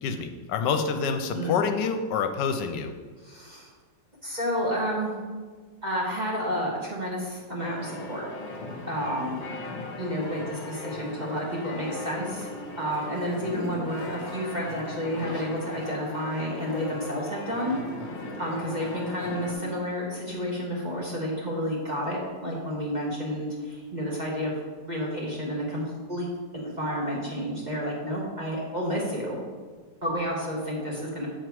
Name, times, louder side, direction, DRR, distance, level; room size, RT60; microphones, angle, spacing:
voice 1, 0.0-2.9, left 5 dB, 80° left, 7 dB, 1.2 m, -27 dB
voice 2, 3.2-3.7 4.2-5.1 5.8-8.3 8.9-9.4 10.0-12.5 12.8-17.8 18.4-24.5 24.8-26.3 26.5-29.4 30.0-31.3, equal, 30° right, -4 dB, 1.1 m, -30 dB
sound 1, 7.6-19.5, left 2 dB, 40° left, 1.4 m, -38 dB
7.8 x 4.6 x 4.6 m, 1.5 s
omnidirectional pair, 1.9 m